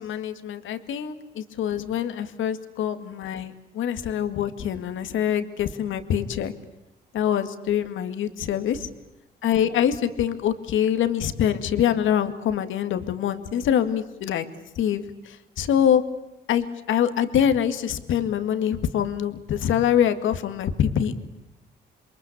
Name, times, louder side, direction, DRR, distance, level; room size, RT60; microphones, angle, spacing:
voice 1, 0.0-6.5 7.1-8.9 9.4-14.4 14.8-16.0 16.5-21.1, left 9 dB, 75° left, 9 dB, 2.2 m, -24 dB
28.5 x 23.0 x 8.6 m, 0.94 s
cardioid pair, 90°, 20 cm